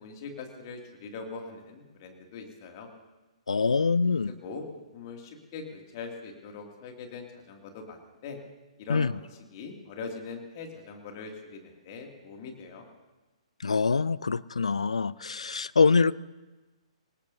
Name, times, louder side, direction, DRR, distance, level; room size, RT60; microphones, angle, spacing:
voice 1, 0.0-2.9 4.4-4.6 4.9-8.4 8.8-12.9, left 4 dB, 35° left, 2 dB, 2.5 m, -42 dB
voice 2, 3.5-4.3 8.9-9.1 13.6-16.1, left 4 dB, 70° left, 21 dB, 0.4 m, -24 dB
25.0 x 18.0 x 2.8 m, 1.2 s
figure-of-eight pair, 125°, 4 cm